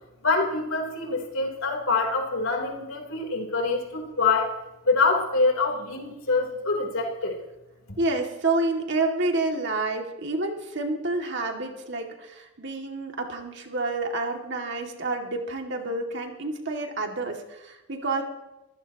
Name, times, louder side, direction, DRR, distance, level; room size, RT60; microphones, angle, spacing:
voice 1, 0.2-4.5 4.9-7.4, left 3 dB, 80° left, 2 dB, 3.6 m, -25 dB
voice 2, 8.0-18.2, right 2 dB, 55° right, 2 dB, 2.3 m, -29 dB
24.5 x 15.5 x 3.0 m, 0.98 s
head